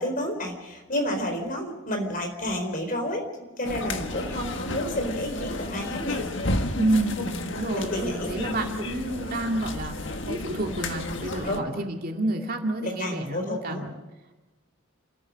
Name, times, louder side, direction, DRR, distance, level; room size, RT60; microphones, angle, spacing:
voice 1, 0.0-3.3 3.6-6.2 7.7-8.3 11.4-11.6 12.8-13.9, left 1 dB, 45° left, 4 dB, 4.3 m, -30 dB
sound 1, 3.6-11.6, left 2 dB, 65° left, 1.6 m, -32 dB
voice 2, 6.8-13.9, right 2 dB, 45° right, 2 dB, 2.3 m, -29 dB
29.5 x 14.0 x 6.4 m, 1.1 s
head